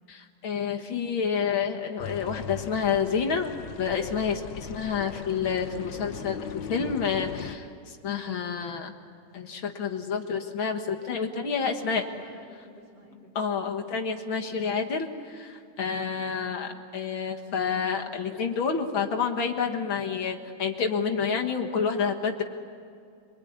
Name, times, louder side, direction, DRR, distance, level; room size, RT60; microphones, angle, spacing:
voice 1, 0.1-8.9 9.3-12.0 13.4-22.4, left 6 dB, 50° left, 3 dB, 2.0 m, -29 dB
sound 1, 2.0-7.6, left 7 dB, 85° left, 1.0 m, -39 dB
voice 2, 11.4-13.7 16.0-16.6, equal, 30° right, -2 dB, 4.8 m, -51 dB
26.5 x 23.5 x 9.5 m, 2.3 s
omnidirectional pair, 3.4 m